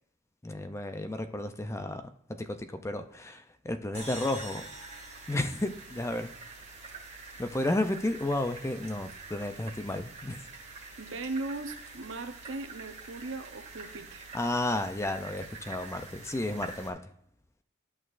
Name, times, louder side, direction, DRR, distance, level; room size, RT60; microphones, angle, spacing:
voice 1, 0.4-2.0 2.4-4.6 5.3-6.3 7.4-10.4 14.3-17.0, left 1 dB, 15° left, 8 dB, 0.4 m, -32 dB
sound 1, 3.9-6.5, equal, 35° left, 3.5 m, -46 dB
sound 2, 3.9-16.9, right 3 dB, 35° right, 1.8 m, -46 dB
voice 2, 11.0-14.3, right 3 dB, 70° right, 7 dB, 0.8 m, -38 dB
11.0 x 6.2 x 2.5 m, 0.69 s
head